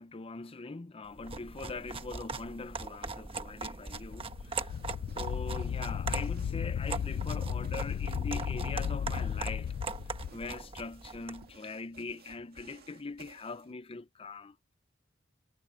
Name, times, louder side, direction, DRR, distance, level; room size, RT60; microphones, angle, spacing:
voice 1, 0.0-4.8 5.1-9.8 10.3-14.7, left 3 dB, 30° left, 0.6 m, -42 dB
sound 1, 1.1-11.5, right 4 dB, 30° right, 1.2 m, -41 dB
Wind, 3.9-10.3, left 8 dB, 90° left, 0.3 m, -35 dB
sound 2, 4.7-13.7, right 3 dB, 50° right, 2.2 m, -58 dB
head